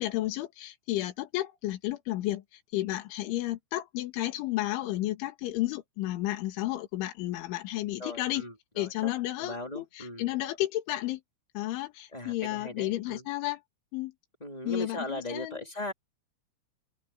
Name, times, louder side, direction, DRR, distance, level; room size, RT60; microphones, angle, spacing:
voice 1, 0.0-8.4 8.8-11.2 11.5-13.6 13.9-14.1 14.7-15.6, left 16 dB, 75° left, 4.3 m, -32 dB
voice 2, 8.0-9.1 9.4-10.3 12.1-13.2 14.4-15.9, left 1 dB, 15° left, 1.8 m, -38 dB
omnidirectional pair, 5.6 m